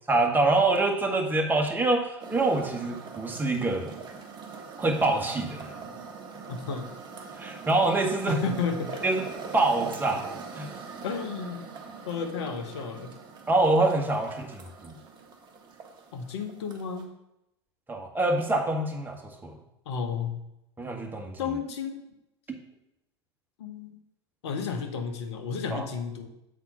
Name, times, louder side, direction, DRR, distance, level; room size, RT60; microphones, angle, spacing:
voice 1, 0.1-3.9 4.8-5.7 7.3-8.4 9.0-9.2 9.5-10.3 10.5-10.7 13.5-15.0 17.9-19.5 20.8-21.3 22.5-22.6 25.7-25.8, right 2 dB, 15° right, 1 dB, 1.5 m, -25 dB
sound 1, 2.2-17.0, right 5 dB, 30° right, 1.2 m, -42 dB
voice 2, 6.5-6.9 8.3-9.0 11.0-11.7 12.1-13.1 16.1-17.1 19.9-20.4 21.4-22.0 23.6-24.0 24.4-26.3, left 5 dB, 70° left, 6 dB, 1.1 m, -32 dB
7.5 x 4.2 x 5.5 m, 0.85 s
hypercardioid pair, 90°, 15 cm